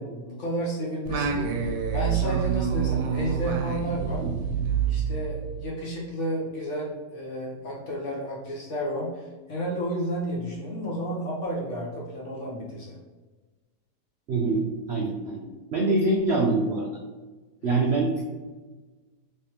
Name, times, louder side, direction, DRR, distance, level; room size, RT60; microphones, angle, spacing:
voice 1, 0.1-4.3 4.8-13.0 17.6-17.8, equal, 55° left, -4 dB, 1.0 m, -32 dB
Singing, 1.0-5.8, right 7 dB, 90° right, 1.2 m, -27 dB
voice 2, 14.3-16.9 17.6-18.2, right 2 dB, 70° right, -2 dB, 0.6 m, -25 dB
3.3 x 3.2 x 2.9 m, 1.3 s
omnidirectional pair, 1.8 m